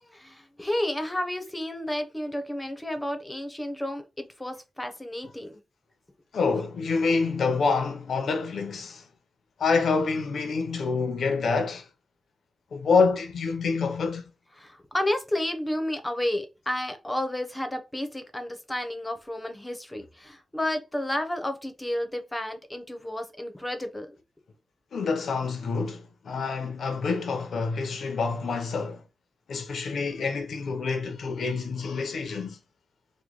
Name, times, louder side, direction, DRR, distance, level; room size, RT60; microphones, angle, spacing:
voice 1, 0.1-5.6 14.6-24.2, left 1 dB, 15° left, 0.8 m, -31 dB
voice 2, 6.3-9.0 9.6-11.9 12.7-14.2 24.9-29.0 29.5-32.6, left 4 dB, 75° left, 0.7 m, -27 dB
3.1 x 2.2 x 3.8 m
cardioid pair, 70°, 0 cm